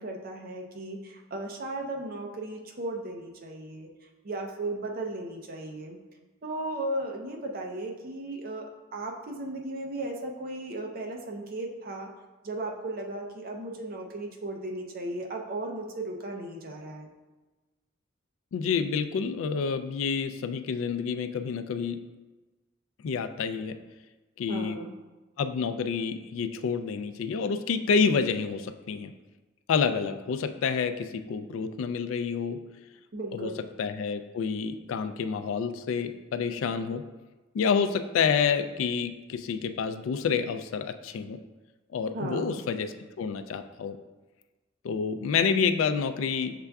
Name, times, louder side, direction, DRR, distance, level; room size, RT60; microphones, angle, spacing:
voice 1, 0.0-6.0 6.4-8.7 8.9-12.1 12.4-17.1 24.5-24.9 33.1-33.7 42.1-42.6, right 2 dB, 45° right, 2 dB, 0.6 m, -36 dB
voice 2, 18.5-22.0 23.0-23.7 24.4-24.8 25.4-29.1 29.7-32.6 33.3-33.5 33.8-37.0 37.5-41.4 41.9-44.0 44.8-46.5, left 6 dB, 80° left, 10 dB, 0.3 m, -28 dB
6.6 x 3.4 x 2.3 m, 1.2 s
head